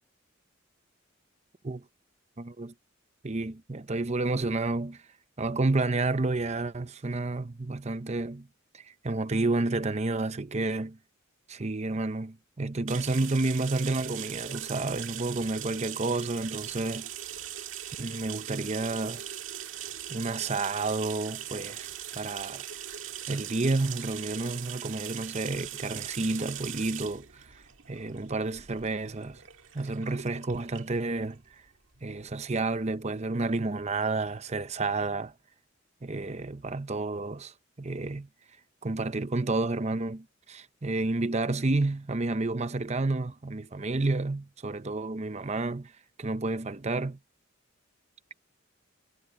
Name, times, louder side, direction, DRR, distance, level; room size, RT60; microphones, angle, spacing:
voice 1, 2.4-2.7 3.2-5.0 5.4-8.5 8.7-11.0 11.5-17.1 18.0-19.2 20.1-22.7 23.3-29.4 29.7-31.4 32.0-35.3 36.0-38.3 38.8-45.9 46.2-47.2, right 2 dB, 35° right, 0.7 m, -30 dB
sound 1, 12.9-32.3, right 11 dB, 70° right, 1.8 m, -40 dB
head